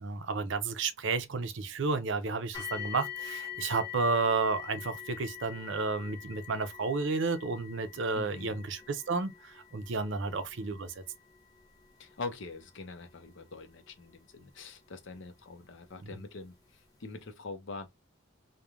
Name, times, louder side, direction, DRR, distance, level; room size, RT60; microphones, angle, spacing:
voice 1, 0.0-10.9, right 4 dB, 65° right, 0.5 m, -32 dB
sound 1, 2.5-15.4 16.3-16.4 16.9-17.0, left 10 dB, 20° left, 0.6 m, -45 dB
voice 2, 8.1-8.6 12.0-17.9, left 3 dB, 65° left, 0.6 m, -43 dB
3.1 x 2.1 x 2.4 m
head